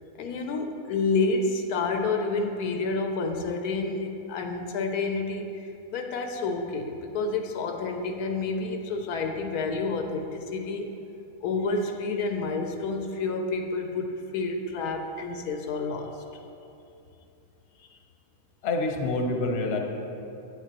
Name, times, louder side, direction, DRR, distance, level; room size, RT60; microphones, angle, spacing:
voice 1, 0.2-10.9 11.4-16.2 17.8-18.0, left 3 dB, 80° left, 5 dB, 1.1 m, -29 dB
voice 2, 18.6-19.8, left 2 dB, 50° left, 2 dB, 1.0 m, -27 dB
9.2 x 8.9 x 2.9 m, 2.7 s
omnidirectional pair, 1.6 m